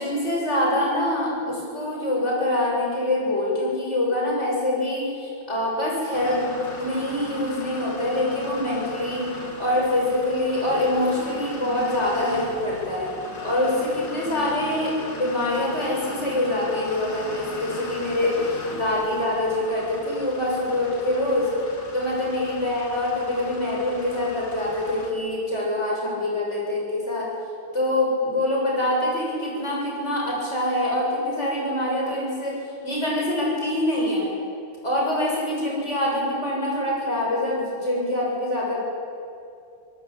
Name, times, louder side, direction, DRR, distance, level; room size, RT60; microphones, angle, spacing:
voice 1, 0.0-6.4 6.8-9.3 9.6-13.1 13.4-21.5 21.9-27.3 27.7-34.3 34.8-38.8, left 1 dB, 30° left, -4 dB, 7.9 m, -25 dB
sound 1, 6.1-25.1, left 2 dB, 60° left, 3.4 m, -38 dB
26.0 x 18.5 x 8.8 m, 2.4 s
omnidirectional pair, 2.3 m